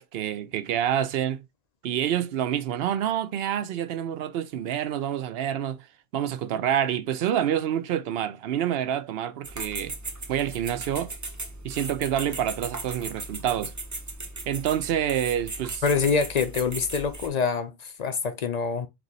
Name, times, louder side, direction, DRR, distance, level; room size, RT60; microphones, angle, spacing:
voice 1, 0.0-1.4 1.8-5.9 6.1-9.9 10.3-11.2 11.6-13.7 14.5-15.8, right 10 dB, 70° right, 0.8 m, -27 dB
sound 1, 9.4-17.3, right 2 dB, 20° right, 0.5 m, -37 dB
voice 2, 15.8-18.9, left 5 dB, 55° left, 0.5 m, -25 dB
4.6 x 2.6 x 3.9 m
omnidirectional pair, 1.1 m